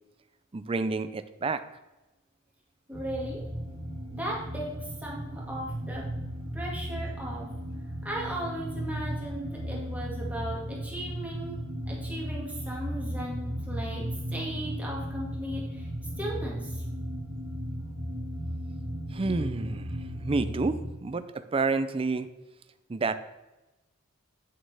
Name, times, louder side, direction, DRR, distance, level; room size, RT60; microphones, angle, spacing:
voice 1, 0.5-1.6 19.1-22.3 22.9-23.2, right 3 dB, 30° right, 11 dB, 0.4 m, -29 dB
voice 2, 2.9-3.4 4.1-6.1 6.5-7.5 8.0-11.6 11.9-15.9 16.2-16.8, right 1 dB, 10° right, -4 dB, 2.1 m, -37 dB
sound 1, 2.9-20.9, equal, 80° right, 1.7 m, -36 dB
8.7 x 7.5 x 3.4 m, 1.0 s
head